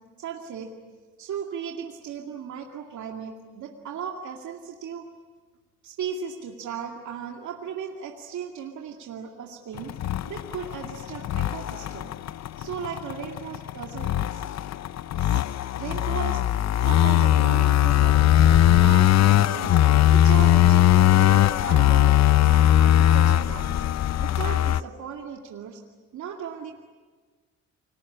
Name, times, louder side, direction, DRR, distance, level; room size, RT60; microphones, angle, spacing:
voice 1, 0.2-0.7 1.2-5.1 5.8-10.0 10.2-12.1 12.6-14.5 15.2-15.4 15.8-16.4 16.8-19.8 20.1-22.1 22.4-23.8 24.2-25.8 26.1-26.7, right 7 dB, 70° right, 1 dB, 2.4 m, -36 dB
sound 1, 9.8-24.8, left 12 dB, 60° left, 0.7 m, -19 dB
29.5 x 20.5 x 8.7 m, 1.4 s
cardioid pair, 90°, 30 cm